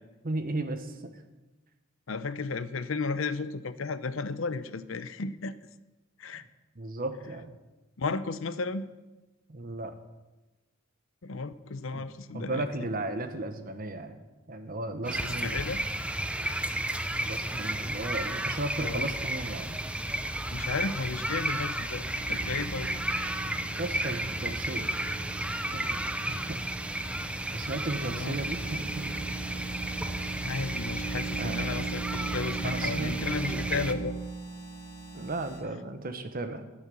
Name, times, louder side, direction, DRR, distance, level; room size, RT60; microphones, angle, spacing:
voice 1, 0.2-1.2 6.8-7.6 9.5-9.9 11.9-12.1 12.3-15.6 17.2-19.9 23.8-24.9 25.7-26.6 27.5-29.1 31.4-31.9 32.6-33.6 35.1-36.6, right 2 dB, 45° right, 8 dB, 1.2 m, -35 dB
voice 2, 2.1-5.7 6.2-6.4 8.0-8.9 11.2-12.7 15.2-15.8 18.8-19.0 20.5-22.9 28.0-28.4 30.4-34.1, left 4 dB, 75° left, 14 dB, 0.7 m, -34 dB
sound 1, 15.0-33.9, right 1 dB, 5° right, 0.6 m, -33 dB
sound 2, 21.7-35.6, right 4 dB, 30° left, 3.0 m, -39 dB
11.0 x 9.8 x 6.9 m, 1.1 s
head